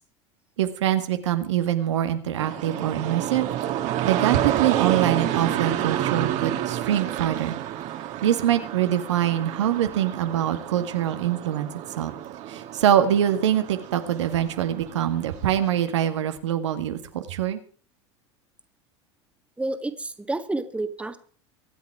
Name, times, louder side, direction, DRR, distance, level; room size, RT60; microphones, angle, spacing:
voice 1, 0.6-3.5 4.0-7.5 8.2-11.7 12.0-12.1 12.5-17.6, right 11 dB, 80° right, 8 dB, 1.8 m, -24 dB
sound 1, 2.4-15.8, right 12 dB, 50° right, 2.1 m, -30 dB
voice 2, 19.6-21.2, right 2 dB, 10° right, 8 dB, 1.7 m, -29 dB
24.0 x 8.6 x 4.8 m, 0.43 s
hypercardioid pair, 95°, 15 cm